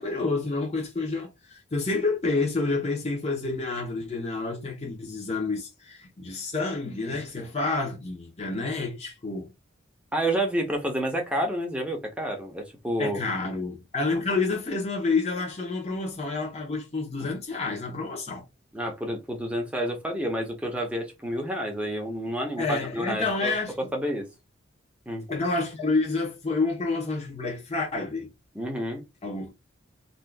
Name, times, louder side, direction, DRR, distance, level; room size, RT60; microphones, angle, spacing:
voice 1, 0.0-9.5 13.0-18.4 22.6-23.7 25.3-28.3 29.2-29.5, left 3 dB, 30° left, 0.9 m, -29 dB
voice 2, 10.1-13.2 18.7-23.5 23.9-24.3 25.1-25.3 28.5-29.0, right 1 dB, 5° right, 0.7 m, -29 dB
2.7 x 2.4 x 3.4 m
head